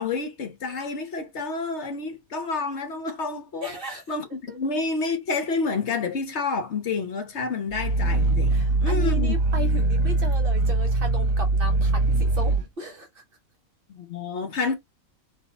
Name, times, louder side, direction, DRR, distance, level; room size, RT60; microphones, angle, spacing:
voice 1, 0.0-3.8 4.1-9.4 13.9-14.7, left 4 dB, 60° left, 1.2 m, -29 dB
voice 2, 3.6-4.0 4.5-4.6 8.5-13.2, equal, 45° right, 1.3 m, -36 dB
Growling, 7.7-12.7, right 2 dB, 85° right, 1.3 m, -22 dB
4.1 x 2.9 x 3.5 m
omnidirectional pair, 1.4 m